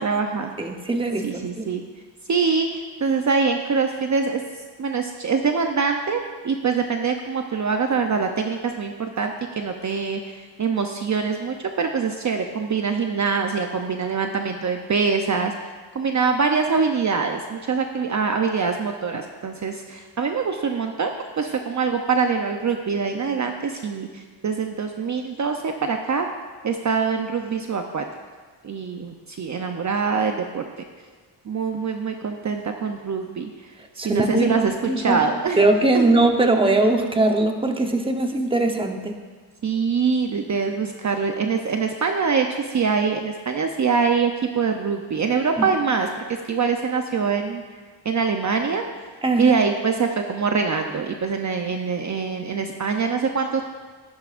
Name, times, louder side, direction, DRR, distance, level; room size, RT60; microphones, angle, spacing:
voice 1, 0.0-0.5 1.2-1.8 2.3-4.4 4.8-15.5 15.9-26.3 26.6-28.0 28.6-30.6 31.5-33.5 34.0-35.6 35.9-36.1 39.6-46.1 46.5-47.6 48.0-48.8 49.4-53.6, right 5 dB, 40° right, 4 dB, 0.7 m, -24 dB
voice 2, 0.6-1.7 34.0-34.6 34.9-35.2 35.6-39.2 45.6-45.7 49.2-49.6, right 2 dB, 10° right, 4 dB, 1.0 m, -20 dB
14.5 x 11.0 x 2.6 m, 1.5 s
cardioid pair, 90°, 44 cm